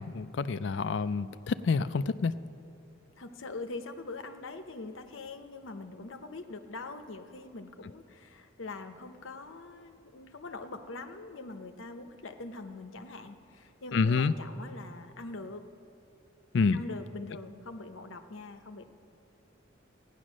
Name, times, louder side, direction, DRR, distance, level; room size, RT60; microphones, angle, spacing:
voice 1, 0.0-2.4 13.9-14.3 16.5-16.8, left 4 dB, 60° left, 14 dB, 0.4 m, -28 dB
voice 2, 3.2-15.6 16.7-18.9, left 3 dB, 75° left, 8 dB, 0.8 m, -43 dB
15.0 x 9.9 x 6.3 m, 2.7 s
head